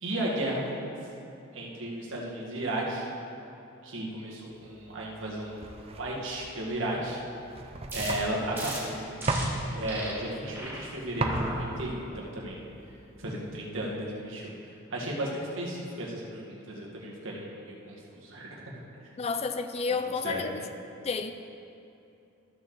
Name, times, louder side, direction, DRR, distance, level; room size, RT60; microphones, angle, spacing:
voice 1, 0.0-1.0 1.5-3.0 3.8-5.7 6.0-7.2 7.9-9.1 9.7-12.6 13.2-14.6 14.9-18.6 20.2-20.4, right 1 dB, 65° right, -3 dB, 1.7 m, -34 dB
sound 1, 4.7-13.7, right 2 dB, 30° right, 0.5 m, -36 dB
sound 2, 7.9-8.1 8.5-8.8 9.2-9.4 9.9-10.1 10.5-10.8 11.2-11.6 12.1-12.4, right 2 dB, 10° right, 1.2 m, -37 dB
voice 2, 19.2-20.6 21.0-21.3, left 4 dB, 30° left, 9 dB, 0.3 m, -30 dB
13.5 x 6.7 x 3.9 m, 2.8 s
head